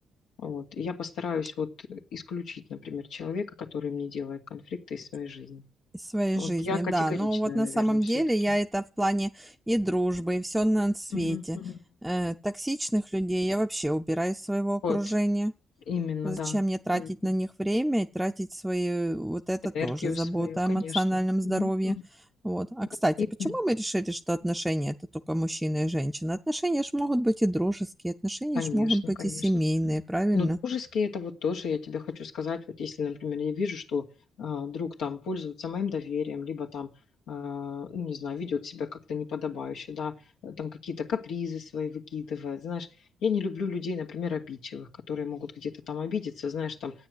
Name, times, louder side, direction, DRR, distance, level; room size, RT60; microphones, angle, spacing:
voice 1, 0.4-5.6 6.3-8.1 11.1-11.8 14.8-15.0 15.9-16.6 16.9-17.3 19.7-21.0 21.4-22.0 23.2-23.6 28.5-29.9 30.3-34.0 34.4-36.9 37.3-40.1 40.4-42.9 43.2-46.9, left 6 dB, 85° left, 2.4 m, -33 dB
voice 2, 5.9-11.6 12.0-15.5 16.2-22.0 22.4-23.2 23.4-24.9 25.3-30.6, right 1 dB, 5° right, 0.6 m, -28 dB
13.0 x 9.2 x 7.9 m
cardioid pair, 90°, 0 cm